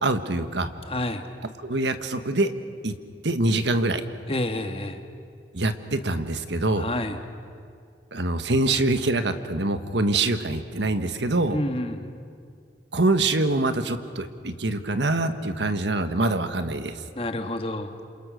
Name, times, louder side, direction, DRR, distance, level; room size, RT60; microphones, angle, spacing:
voice 1, 0.0-0.7 1.6-2.5 2.8-2.9 3.2-4.0 5.5-6.9 8.1-11.6 12.9-17.0, right 2 dB, 80° right, 9 dB, 1.5 m, -24 dB
voice 2, 0.9-1.3 4.3-5.0 6.8-7.2 11.5-12.1 17.1-17.9, left 1 dB, 30° left, 6 dB, 1.5 m, -29 dB
29.0 x 27.0 x 6.4 m, 2.3 s
head